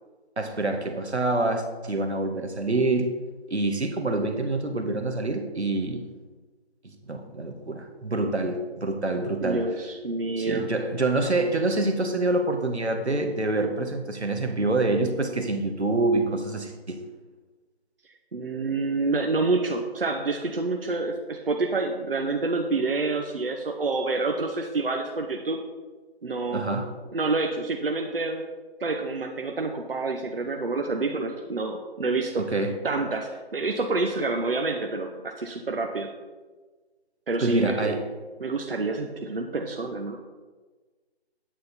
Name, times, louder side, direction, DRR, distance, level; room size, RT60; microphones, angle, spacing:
voice 1, 0.4-3.1 3.5-6.0 7.1-9.7 10.4-17.0 26.5-26.9 32.4-32.8 37.4-38.0, right 2 dB, 85° right, 5 dB, 1.6 m, -26 dB
voice 2, 9.4-10.7 18.3-25.6 26.2-26.6 27.1-28.4 28.8-32.5 32.8-36.1 37.3-37.9 38.4-40.2, right 3 dB, 60° right, 3 dB, 1.0 m, -28 dB
9.4 x 8.7 x 4.2 m, 1.3 s
figure-of-eight pair, 165°, 32 cm